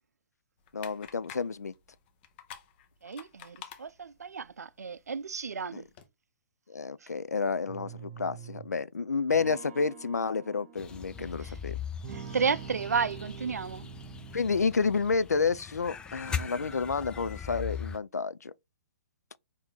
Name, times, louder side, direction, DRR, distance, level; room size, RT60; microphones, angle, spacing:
sound 1, 0.6-6.1, left 10 dB, 40° left, 1.0 m, -51 dB
voice 1, 0.7-1.7 5.7-5.8 6.7-11.7 14.3-18.5, left 4 dB, 85° left, 0.4 m, -30 dB
voice 2, 3.0-5.9 11.2-11.6 12.1-13.9, right 5 dB, 80° right, 0.4 m, -33 dB
sound 2, 7.7-8.8 9.3-11.6 12.0-14.6, right 7 dB, 50° right, 1.0 m, -45 dB
sound 3, 10.8-18.0, left 8 dB, 10° left, 0.4 m, -40 dB
4.8 x 2.8 x 3.8 m
figure-of-eight pair, 125°, 9 cm